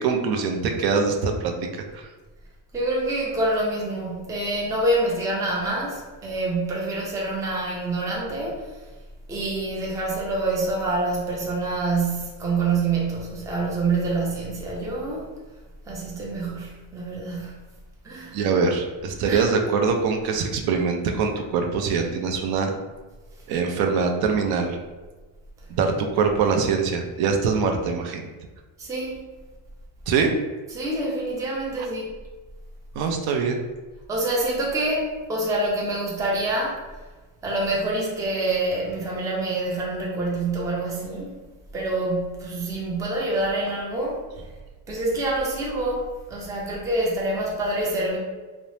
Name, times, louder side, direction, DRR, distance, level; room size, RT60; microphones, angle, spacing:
voice 1, 0.0-2.1 18.3-22.7 23.5-24.8 25.7-28.3 30.1-30.3 32.9-33.6, right 5 dB, 65° right, 3 dB, 0.5 m, -23 dB
voice 2, 2.7-8.7 9.3-15.3 15.9-17.6 18.0-18.4 19.2-19.4 28.8-29.2 30.7-32.2 34.1-36.8 37.4-41.3 41.7-44.2 44.9-48.2, right 2 dB, 10° right, -4 dB, 0.4 m, -26 dB
2.7 x 2.0 x 3.1 m, 1.3 s
cardioid pair, 150°, 40 cm